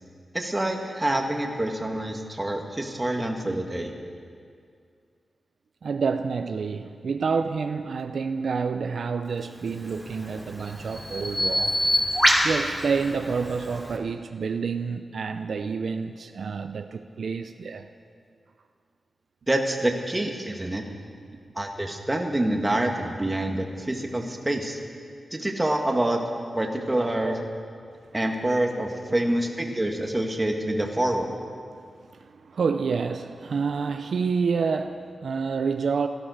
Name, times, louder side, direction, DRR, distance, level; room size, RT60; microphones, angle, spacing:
voice 1, 0.3-3.9 19.5-20.8 21.6-24.8 25.3-26.2 26.5-27.4 28.1-31.3, right 1 dB, 20° right, 2 dB, 2.0 m, -26 dB
voice 2, 5.8-11.9 12.4-17.9 27.2-27.4 32.1-36.1, right 5 dB, 75° right, 7 dB, 0.5 m, -28 dB
Bird vocalization bird call bird song, 9.8-14.0, equal, 10° left, 2.8 m, -26 dB
17.0 x 12.5 x 6.6 m, 2.2 s
cardioid pair, 70°, 0 cm